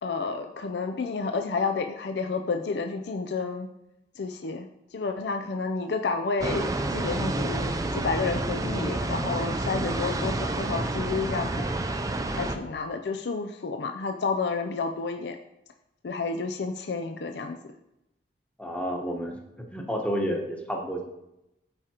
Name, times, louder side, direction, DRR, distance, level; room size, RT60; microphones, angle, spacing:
voice 1, 0.0-3.7 4.2-4.7 4.9-11.7 12.3-15.4 16.0-17.6, left 4 dB, 70° left, 5 dB, 0.5 m, -30 dB
sound 1, 6.4-12.6, right 2 dB, 20° right, 0.4 m, -29 dB
voice 2, 18.6-19.4 19.7-21.0, equal, 10° left, 0 dB, 1.1 m, -30 dB
13.5 x 4.9 x 2.9 m, 0.88 s
head